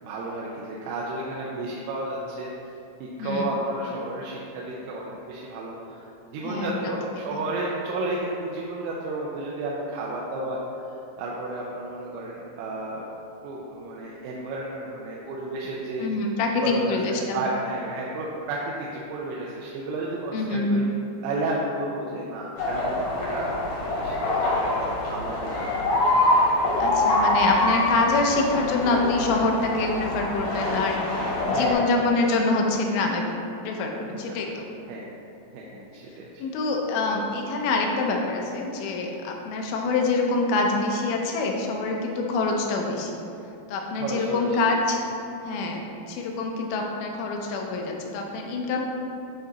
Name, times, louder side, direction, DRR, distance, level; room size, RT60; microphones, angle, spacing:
voice 1, 0.0-2.5 3.0-10.6 11.2-13.0 13.4-16.1 16.6-20.8 21.2-24.3 25.1-25.8 31.5-31.9 34.3-34.4 34.9-35.1 35.5-36.4 44.0-44.7, right 2 dB, 85° right, -4 dB, 3.0 m, -32 dB
voice 2, 3.2-3.5 6.4-7.0 16.0-17.4 20.3-20.8 26.8-33.3 33.6-34.7 36.4-43.2 43.7-45.0 45.4-48.8, left 3 dB, 85° left, 1 dB, 3.2 m, -26 dB
sound 1, 22.6-31.7, left 1 dB, 65° left, 1.7 m, -25 dB
10.0 x 3.8 x 4.1 m, 2.8 s
omnidirectional pair, 5.3 m